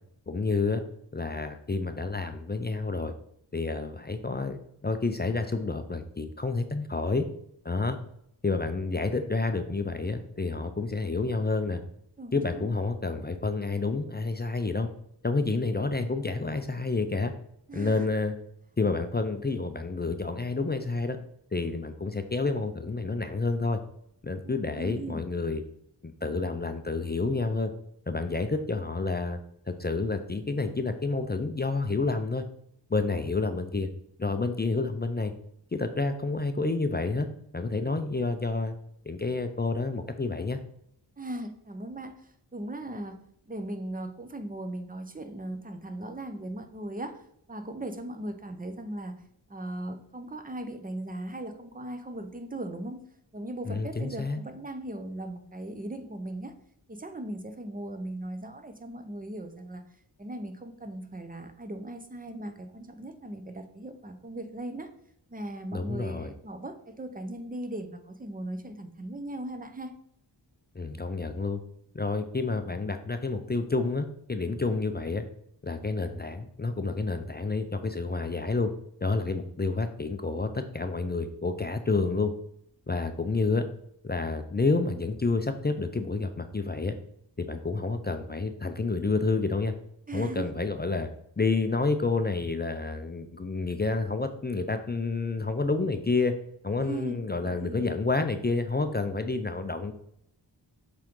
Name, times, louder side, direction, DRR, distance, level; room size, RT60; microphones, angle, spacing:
voice 1, 0.3-0.8 1.1-3.1 3.5-7.3 7.6-8.0 8.4-11.8 12.3-14.9 15.2-17.3 17.7-18.3 18.8-21.2 21.5-23.8 24.2-25.6 26.0-27.7 28.1-29.4 29.7-32.4 32.9-33.9 34.2-35.3 35.7-37.3 37.5-38.7 39.1-40.6 53.7-54.4 65.7-66.3 70.7-71.6 71.9-75.2 75.6-78.7 79.0-82.3 82.9-83.7 84.0-86.9 87.4-89.7 90.1-91.1 91.4-96.3 96.6-99.9, left 3 dB, 25° left, 7 dB, 0.5 m, -29 dB
voice 2, 12.2-12.7 17.7-18.1 24.4-25.2 41.2-43.2 43.5-47.2 47.5-49.2 49.5-53.0 53.3-56.5 56.9-59.8 60.2-64.9 65.3-69.9 90.1-90.5 96.8-97.9, right 1 dB, 20° right, 8 dB, 0.8 m, -38 dB
7.3 x 3.8 x 3.7 m, 0.71 s
wide cardioid pair, 65°, 43 cm